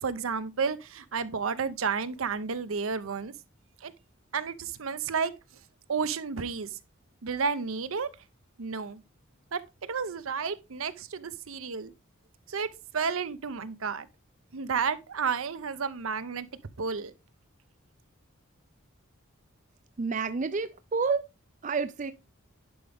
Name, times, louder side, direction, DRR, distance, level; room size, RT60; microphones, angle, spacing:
voice 1, 0.0-3.3 3.8-3.9 4.3-5.3 5.9-6.8 7.2-8.1 8.6-9.0 9.5-11.9 12.5-14.1 14.5-16.5 16.8-17.1, right 5 dB, 80° right, 0.7 m, -31 dB
voice 2, 20.0-21.3 21.6-22.1, right 4 dB, 35° right, 0.4 m, -29 dB
11.0 x 4.9 x 3.4 m
head